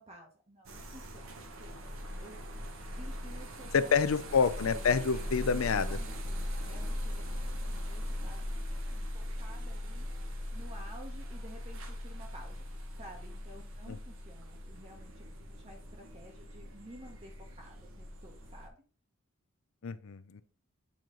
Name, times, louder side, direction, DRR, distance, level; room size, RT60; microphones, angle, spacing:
voice 1, 0.0-2.4 2.7-3.9 4.6-8.6 8.9-12.6 13.0-18.8, right 1 dB, 30° right, 0 dB, 1.1 m, -53 dB
sound 1, 0.6-18.7, left 1 dB, 70° right, 1.0 m, -40 dB
voice 2, 3.7-6.0 13.9-14.0 19.8-20.4, left 5 dB, 75° left, 14 dB, 0.5 m, -28 dB
8.5 x 3.1 x 3.8 m, 0.38 s
head